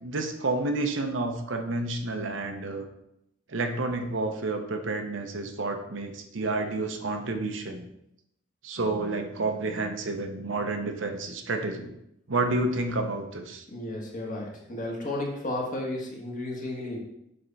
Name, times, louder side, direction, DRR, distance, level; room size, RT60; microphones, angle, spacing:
voice 1, 0.0-2.9 3.5-7.9 8.6-12.0 12.3-13.6, right 2 dB, 70° right, 5 dB, 0.8 m, -30 dB
voice 2, 13.7-17.0, left 1 dB, 45° left, -1 dB, 1.4 m, -33 dB
7.6 x 3.5 x 4.0 m, 0.79 s
head